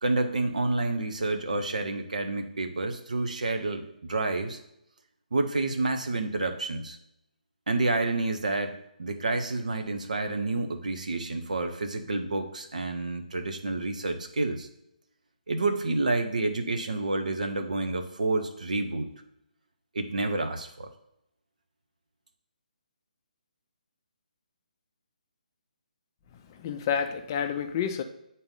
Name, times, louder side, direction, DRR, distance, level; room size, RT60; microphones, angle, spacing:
voice 1, 0.0-4.6 5.3-7.0 7.7-14.7 15.5-19.1 19.9-20.9, right 2 dB, 55° right, 7 dB, 0.9 m, -29 dB
voice 2, 26.3-28.0, left 7 dB, 25° left, 8 dB, 0.5 m, -30 dB
8.7 x 4.2 x 3.9 m, 0.82 s
figure-of-eight pair, 140°, 5 cm